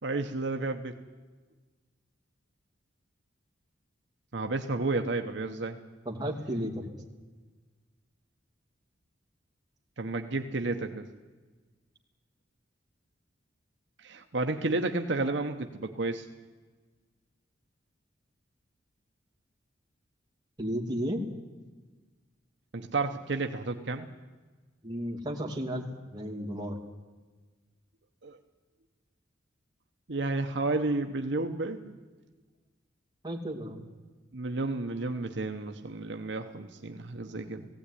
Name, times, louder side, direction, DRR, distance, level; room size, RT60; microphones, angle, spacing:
voice 1, 0.0-1.0 4.3-5.8 10.0-11.0 14.0-16.3 22.7-24.1 28.2-28.4 30.1-32.0 34.3-37.7, right 2 dB, 65° right, 5 dB, 1.0 m, -31 dB
voice 2, 6.0-6.8 20.6-21.2 24.8-25.8 26.1-26.8 33.2-33.8, equal, 20° right, 0 dB, 2.8 m, -33 dB
18.5 x 16.5 x 10.0 m, 1.3 s
head